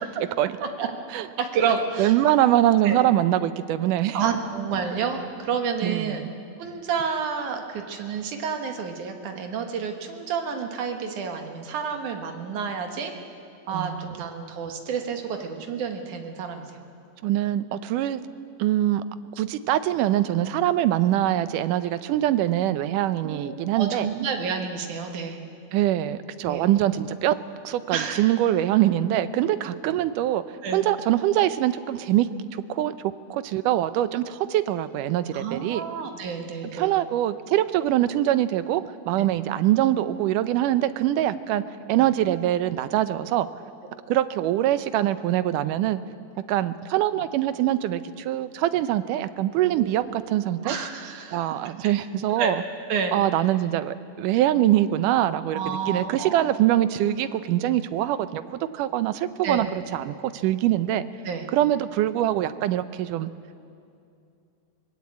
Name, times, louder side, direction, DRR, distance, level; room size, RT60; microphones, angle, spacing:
voice 1, 1.2-2.1 2.8-3.0 4.1-6.2 6.6-13.1 13.7-16.8 23.2-25.4 26.4-26.7 27.9-28.3 30.6-30.8 35.3-37.0 49.6-50.1 50.6-51.5 52.4-52.5 52.9-53.1 55.5-56.4 59.4-59.7 61.2-61.5, right 6 dB, 70° right, 4 dB, 3.1 m, -29 dB
voice 2, 2.0-4.2 5.8-6.3 13.7-14.2 17.2-18.3 18.6-19.0 19.4-24.1 25.7-27.4 27.6-30.4 30.7-32.9 33.3-35.8 36.7-41.6 41.9-43.5 44.1-46.0 46.5-50.8 51.3-52.6 53.1-60.1 60.4-61.0 61.5-63.3, right 13 dB, 90° right, 13 dB, 2.3 m, -23 dB
25.0 x 20.0 x 8.5 m, 2.5 s
omnidirectional pair, 3.6 m